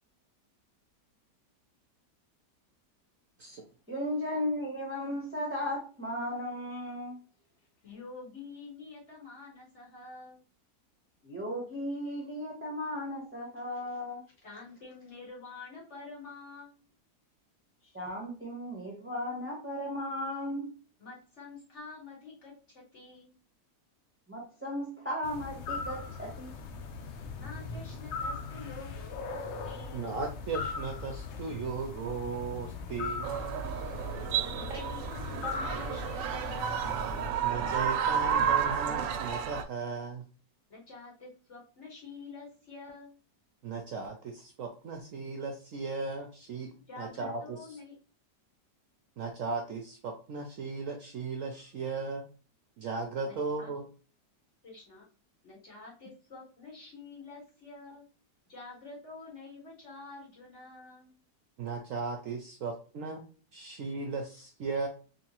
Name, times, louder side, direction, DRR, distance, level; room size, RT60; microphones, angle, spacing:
voice 1, 3.9-7.2 11.2-14.2 17.9-20.7 24.3-26.5, left 1 dB, 10° right, 0.7 m, -35 dB
voice 2, 7.8-10.4 14.4-16.9 21.0-23.3 27.3-30.1 34.5-37.0 40.7-43.2 46.9-48.0 53.2-53.7 54.6-55.1 55.4-58.1 58.4-61.2, left 3 dB, 40° left, 1.8 m, -48 dB
sound 1, 25.2-37.3, left 4 dB, 80° left, 0.6 m, -39 dB
voice 3, 29.9-33.4 34.7-34.8 35.4-35.5 37.4-40.2 43.6-46.7 47.0-47.4 49.2-52.2 52.8-53.8 61.6-63.2 63.5-64.9, right 4 dB, 65° right, 0.9 m, -36 dB
sound 2, 33.2-39.6, right 8 dB, 90° right, 1.3 m, -31 dB
3.6 x 3.3 x 2.9 m
omnidirectional pair, 1.9 m